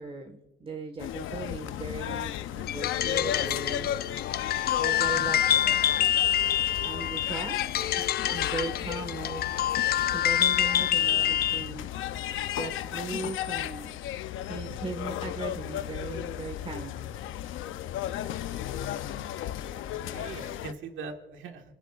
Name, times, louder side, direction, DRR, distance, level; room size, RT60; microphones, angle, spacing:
voice 1, 0.0-3.9 4.8-5.7 6.8-7.6 8.0-8.1 8.3-9.4 10.1-11.9 12.6-13.9 14.4-16.9, right 3 dB, 30° right, 4 dB, 1.6 m, -38 dB
sound 1, 1.0-20.7, left 12 dB, 85° left, 0.7 m, -35 dB
sound 2, 2.7-11.7, left 10 dB, 50° left, 0.4 m, -26 dB
voice 2, 19.7-21.6, right 5 dB, 75° right, 4 dB, 1.8 m, -42 dB
27.5 x 16.0 x 2.5 m, 1.0 s
cardioid pair, 90°, 20 cm